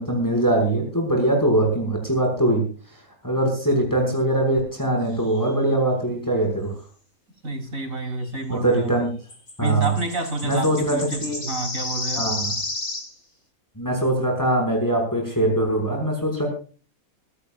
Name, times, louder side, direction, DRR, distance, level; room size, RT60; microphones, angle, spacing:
voice 1, 0.0-2.6 2.9-6.7 8.5-9.1 9.6-9.9 10.4-11.4 12.1-12.5 13.8-16.5, right 1 dB, 15° left, 6.3 m, -22 dB
sound 1, 5.3-5.5 9.3-13.1, left 2 dB, 90° left, 6.0 m, -31 dB
voice 2, 7.4-9.0 9.6-12.3, right 2 dB, 70° right, 4.0 m, -29 dB
24.5 x 15.0 x 2.5 m
omnidirectional pair, 1.5 m